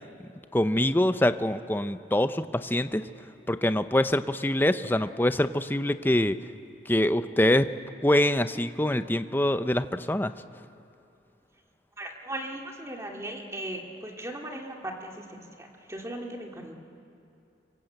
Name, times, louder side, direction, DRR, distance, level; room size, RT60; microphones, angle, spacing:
voice 1, 0.5-3.0 3.5-6.4 6.9-7.7 8.0-10.3, left 1 dB, 10° left, 11 dB, 0.6 m, -24 dB
voice 2, 12.0-16.7, right 1 dB, 15° right, 1 dB, 2.4 m, -38 dB
25.0 x 25.0 x 8.0 m, 2.7 s
head